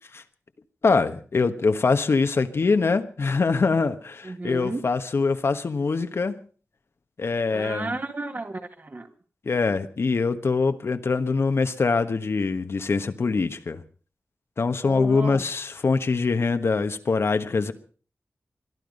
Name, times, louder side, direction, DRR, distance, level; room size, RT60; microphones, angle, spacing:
voice 1, 0.8-6.4 7.2-8.0 9.4-13.8 14.6-17.7, left 4 dB, 60° left, 9 dB, 1.2 m, -23 dB
voice 2, 4.2-4.9 7.5-9.1 14.8-15.4, right 2 dB, 40° right, 6 dB, 1.9 m, -33 dB
22.0 x 12.5 x 5.3 m, 0.42 s
wide cardioid pair, 95°, 5 cm